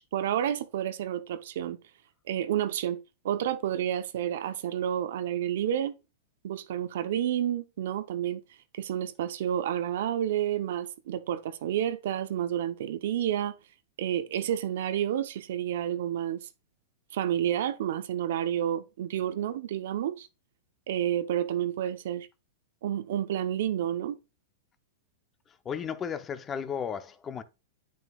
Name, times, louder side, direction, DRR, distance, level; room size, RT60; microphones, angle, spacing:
voice 1, 0.1-1.8 2.3-3.0 3.2-6.0 6.4-8.4 8.7-13.5 14.0-16.5 17.1-20.3 20.9-22.3 22.8-24.2, right 10 dB, 70° right, 0.8 m, -30 dB
voice 2, 25.6-27.4, left 7 dB, 25° left, 0.7 m, -34 dB
8.8 x 6.5 x 2.4 m
hypercardioid pair, 130°, 0 cm